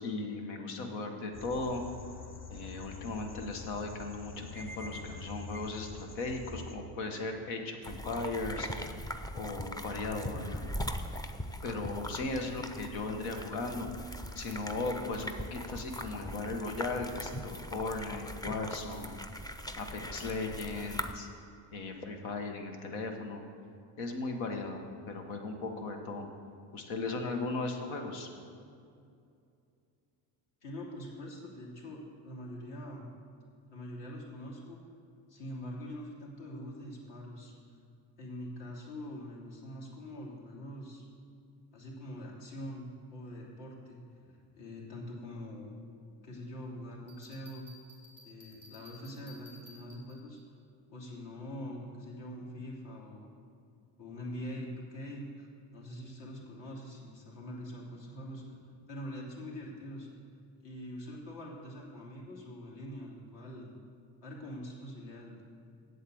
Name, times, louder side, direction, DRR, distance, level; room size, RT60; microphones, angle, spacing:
voice 1, 0.0-1.8 2.5-8.7 9.3-10.6 11.6-13.9 14.3-19.1 19.8-21.3 21.7-23.4 24.0-26.3 26.7-28.3, left 3 dB, 90° left, 4 dB, 1.5 m, -37 dB
sound 1, 1.3-6.8, left 4 dB, 25° left, 0.9 m, -45 dB
sound 2, 7.8-21.1, equal, 10° left, 0.4 m, -40 dB
voice 2, 30.6-33.1 33.7-34.8 35.3-37.5 38.2-41.0 41.7-42.9 43.1-45.7 46.2-47.7 48.2-50.4 50.9-53.3 54.0-58.6 58.9-60.1 60.6-63.7 64.2-65.4, equal, 65° left, -3 dB, 3.0 m, -44 dB
Bell, 47.1-50.4, left 1 dB, 45° left, 2.4 m, -56 dB
8.2 x 7.8 x 7.8 m, 2.4 s
cardioid pair, 115°, 47 cm